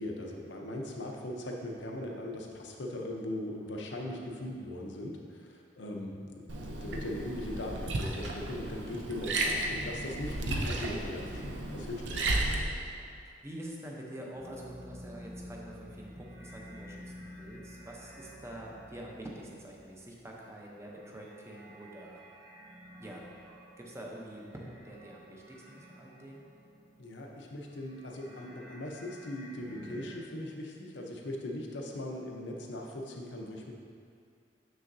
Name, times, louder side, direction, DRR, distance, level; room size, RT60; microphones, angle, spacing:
voice 1, 0.0-12.3 27.0-33.7, left 1 dB, 80° left, 1 dB, 0.8 m, -39 dB
Liquid, 6.5-12.6, right 2 dB, 80° right, 0.6 m, -34 dB
voice 2, 10.9-11.5 13.2-22.2 23.0-23.3 23.8-26.4, right 1 dB, 15° right, -2 dB, 0.7 m, -46 dB
sound 1, 14.3-27.2 27.5-30.1, equal, 65° right, 1.4 m, -51 dB
6.9 x 6.3 x 2.7 m, 2.4 s
head